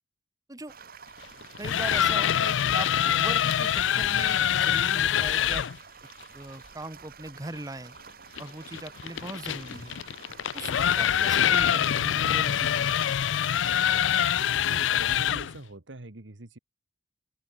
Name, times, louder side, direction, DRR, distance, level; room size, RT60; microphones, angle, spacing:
sound 1, 0.7-14.9, right 6 dB, 50° right, 5.0 m, -49 dB
sound 2, 1.4-5.8 8.4-15.6, left 9 dB, 80° left, 0.4 m, -25 dB
voice 1, 1.6-5.7 6.3-8.0 8.4-10.0 10.5-13.0, right 2 dB, 20° right, 1.4 m, -39 dB
voice 2, 14.5-16.6, right 2 dB, 75° right, 1.6 m, -44 dB
open air
head